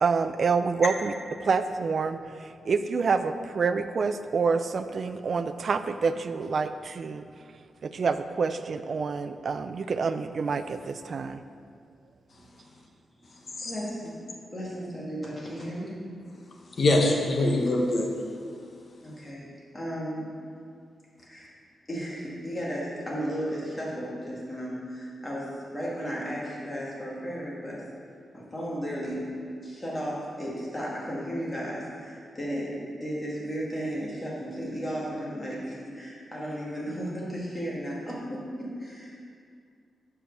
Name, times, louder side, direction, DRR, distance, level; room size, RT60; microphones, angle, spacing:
voice 1, 0.0-7.3 7.8-11.4, right 5 dB, 50° right, 10 dB, 0.3 m, -27 dB
voice 2, 13.2-14.2 14.5-15.9 19.0-20.3 21.2-21.5 21.9-27.8 28.3-29.3 29.6-39.3, equal, 20° left, -5 dB, 2.0 m, -34 dB
voice 3, 16.8-18.1, left 1 dB, 45° left, 1 dB, 1.0 m, -23 dB
7.6 x 4.8 x 6.5 m, 2.2 s
wide cardioid pair, 140°, 0 cm